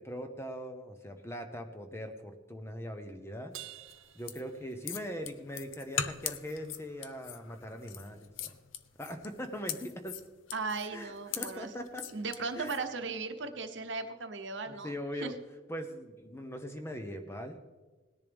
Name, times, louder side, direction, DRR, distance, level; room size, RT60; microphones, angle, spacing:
voice 1, 0.0-3.5 4.1-8.5 9.0-10.2 10.9-12.1 12.5-12.8 14.7-15.3 15.7-17.6, equal, 15° left, 6 dB, 0.8 m, -41 dB
Crash cymbal, 3.5-5.3, right 13 dB, 90° right, 0.7 m, -49 dB
sound 1, 3.8-12.8, left 9 dB, 85° left, 0.7 m, -41 dB
voice 2, 10.5-11.7 12.1-14.9 15.2-15.3, right 4 dB, 70° right, 7 dB, 1.0 m, -37 dB
18.5 x 10.5 x 3.5 m, 1.3 s
head